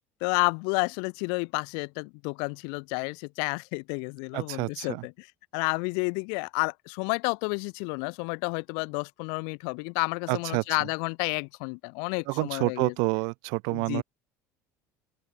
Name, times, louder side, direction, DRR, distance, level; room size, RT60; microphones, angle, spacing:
voice 1, 0.2-5.3 5.5-12.9 13.7-14.0, left 40 dB or more, 70° left, 0.6 m, -30 dB
voice 2, 4.3-5.1 10.3-10.6 12.3-14.0, right 35 dB, 65° right, 2.0 m, -28 dB
open air
cardioid pair, 170°, 7 cm